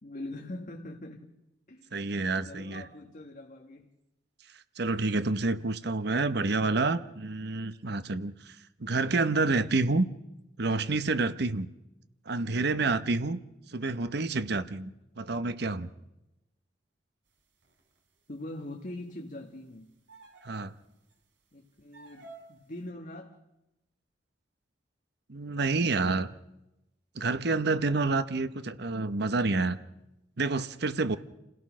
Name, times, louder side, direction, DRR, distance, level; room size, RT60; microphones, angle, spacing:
voice 1, 0.0-1.3 1.7-3.9 18.3-20.0 21.5-23.4, left 1 dB, 45° left, 1.6 m, -43 dB
voice 2, 1.9-2.8 4.8-10.0 10.6-11.7 12.3-13.4 13.7-15.9 20.4-20.7 25.3-26.3 27.2-29.8 30.4-31.2, right 3 dB, 60° right, 0.9 m, -28 dB
sound 1, 17.6-18.0 20.1-20.7 21.1-21.2 21.9-22.6, right 3 dB, 85° right, 3.7 m, -51 dB
29.0 x 17.0 x 6.2 m
head